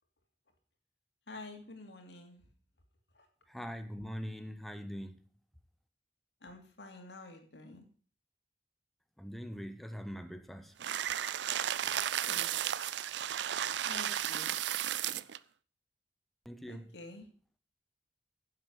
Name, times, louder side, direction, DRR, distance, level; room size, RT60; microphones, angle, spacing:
voice 1, 1.3-2.5 3.1-3.3 6.4-7.8 12.2-12.6 13.8-14.5 16.7-17.3, left 2 dB, 80° left, 2.7 m, -49 dB
voice 2, 3.5-5.2 9.2-10.7 16.4-16.9, equal, ahead, 0.8 m, -42 dB
sound 1, 10.8-15.4, right 10 dB, 85° right, 0.5 m, -34 dB
10.5 x 7.6 x 6.5 m
head